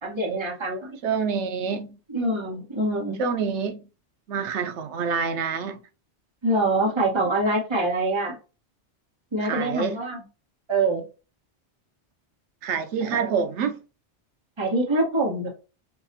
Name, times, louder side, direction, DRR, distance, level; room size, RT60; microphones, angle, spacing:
voice 1, 0.0-1.0 2.1-3.2 6.4-8.4 9.3-10.2 10.7-11.1 13.0-13.4 14.6-15.5, right 2 dB, 25° right, 1.2 m, -25 dB
voice 2, 1.0-2.0 3.2-3.9 4.3-5.8 9.4-10.0 12.6-13.8, right 6 dB, 80° right, 0.9 m, -27 dB
5.8 x 2.4 x 2.6 m
omnidirectional pair, 1.2 m